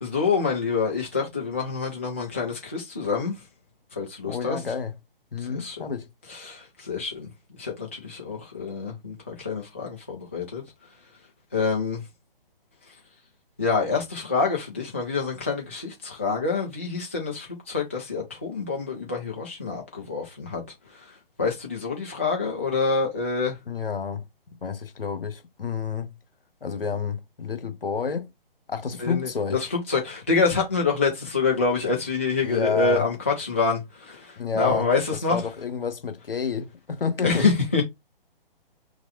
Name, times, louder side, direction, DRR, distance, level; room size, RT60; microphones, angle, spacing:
voice 1, 0.0-3.4 4.0-4.6 5.6-5.8 6.3-7.3 7.6-10.6 11.5-12.0 13.6-20.6 21.4-23.6 29.0-29.3 29.7-35.4 37.2-37.8, left 4 dB, 15° left, 0.3 m, -26 dB
voice 2, 4.3-4.9 5.3-6.1 23.7-24.2 24.6-26.1 26.6-28.3 28.7-29.6 32.4-33.1 34.4-37.5, left 5 dB, 70° left, 0.9 m, -29 dB
3.0 x 2.2 x 3.0 m
figure-of-eight pair, 135°, 29 cm